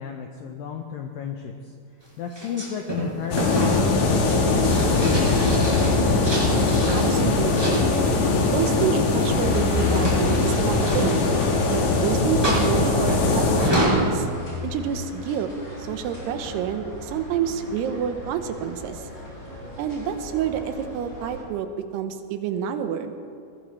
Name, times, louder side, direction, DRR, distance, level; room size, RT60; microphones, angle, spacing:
voice 1, 0.0-1.7 2.2-5.0, left 7 dB, 90° left, 3 dB, 2.0 m, -33 dB
sound 1, 2.3-7.1 7.5-8.2 9.2-11.9 12.4-14.1, right 1 dB, 5° right, 4.4 m, -29 dB
sound 2, 3.3-13.7, left 3 dB, 55° left, 2.2 m, -21 dB
voice 2, 6.2-7.9 8.4-11.3 11.7-14.3 14.6-15.5 15.8-19.1 19.8-21.7 21.9-23.1, right 8 dB, 80° right, 7 dB, 2.8 m, -28 dB
sound 3, 9.3-21.4, left 2 dB, 30° left, 5.2 m, -36 dB
22.5 x 18.0 x 3.2 m, 2.3 s
omnidirectional pair, 5.1 m